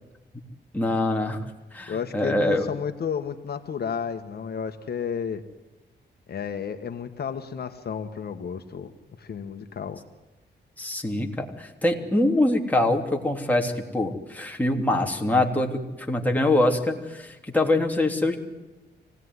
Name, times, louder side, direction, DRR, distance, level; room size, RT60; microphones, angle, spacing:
voice 1, 0.7-1.4 1.7-2.7 10.8-15.8 16.1-18.4, left 1 dB, 10° left, 1 dB, 3.3 m, -24 dB
voice 2, 1.9-5.4 6.3-8.9 9.2-10.0, left 7 dB, 60° left, 7 dB, 1.5 m, -32 dB
25.0 x 17.5 x 9.7 m, 1.1 s
cardioid pair, 100°, 18 cm